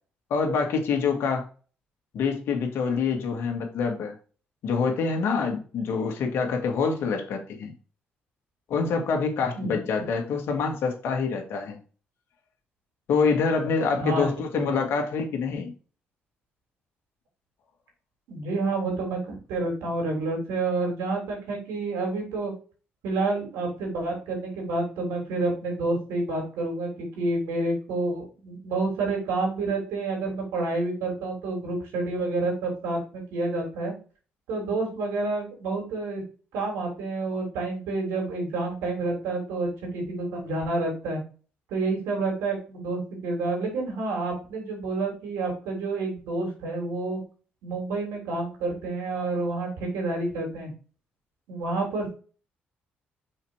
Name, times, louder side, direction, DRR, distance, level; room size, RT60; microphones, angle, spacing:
voice 1, 0.3-1.5 2.1-4.1 4.6-7.7 8.7-11.8 13.1-15.7, left 5 dB, 75° left, 3 dB, 2.0 m, -26 dB
voice 2, 18.3-22.5 23.0-33.9 34.5-36.2 36.5-41.2 41.7-47.2 47.6-50.7 51.5-52.1, right 3 dB, 85° right, 0 dB, 3.6 m, -29 dB
5.7 x 4.6 x 4.8 m, 0.37 s
supercardioid pair, 65°, 4 cm